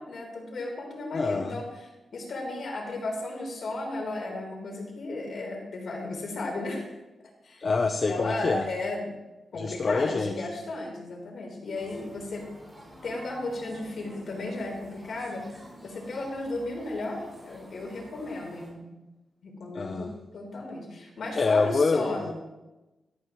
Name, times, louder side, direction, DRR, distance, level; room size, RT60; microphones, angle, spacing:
voice 1, 0.0-6.9 7.4-7.6 8.0-9.1 9.5-12.4 13.0-15.4 15.8-18.9 19.4-22.3, left 2 dB, 60° left, 0 dB, 3.8 m, -34 dB
voice 2, 1.1-1.5 7.6-8.7 9.5-10.5 19.7-20.1 21.4-22.3, left 4 dB, 40° left, 6 dB, 0.7 m, -26 dB
sound 1, 11.7-18.7, equal, 15° right, 4.8 m, -49 dB
14.0 x 13.0 x 3.1 m, 1.1 s
wide cardioid pair, 130°, 0 cm